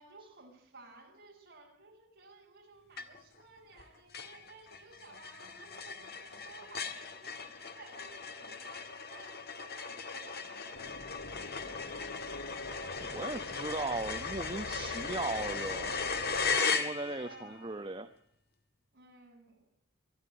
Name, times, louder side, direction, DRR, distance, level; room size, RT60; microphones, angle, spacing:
voice 1, 0.0-10.7 17.0-17.8 18.9-19.7, right 3 dB, 45° right, 0 dB, 7.9 m, -56 dB
sound 1, 3.0-3.4 3.8-3.9 4.1-17.4, left 5 dB, 50° left, 1.8 m, -37 dB
sound 2, 10.7-16.6, left 2 dB, 75° left, 2.0 m, -46 dB
voice 2, 13.1-15.9 16.6-18.1, right 2 dB, 25° right, 6 dB, 1.0 m, -37 dB
24.5 x 12.0 x 9.9 m, 0.73 s
head